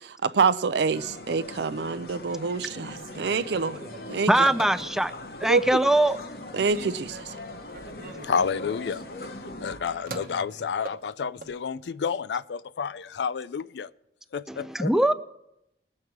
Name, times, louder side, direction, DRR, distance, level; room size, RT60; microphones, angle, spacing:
voice 1, 0.0-3.8 4.1-4.3 5.5-5.7 6.5-7.3, right 5 dB, 75° right, 0.5 m, -26 dB
sound 1, 0.9-9.8, left 2 dB, 60° left, 1.0 m, -41 dB
Telephone, 2.8-5.3 5.8-6.3 6.6-11.6, right 3 dB, 55° right, 1.0 m, -43 dB
voice 2, 4.3-5.1 5.4-6.2 14.5-15.1, right 1 dB, 5° right, 0.4 m, -22 dB
voice 3, 8.2-9.0 9.6-13.9 14.3-14.9, left 6 dB, 80° left, 0.4 m, -30 dB
20.0 x 7.5 x 4.6 m
head